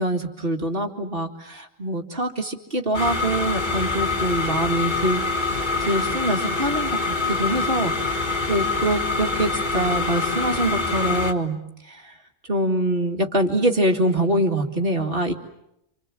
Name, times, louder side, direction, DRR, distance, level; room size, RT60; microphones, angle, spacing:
voice 1, 0.0-5.2 5.5-11.6 11.9-12.1 12.5-15.3, right 1 dB, 45° right, 3 dB, 2.4 m, -24 dB
sound 1, 2.9-11.3, left 3 dB, 40° left, 1.8 m, -25 dB
29.0 x 26.5 x 7.6 m, 0.80 s
omnidirectional pair, 1.3 m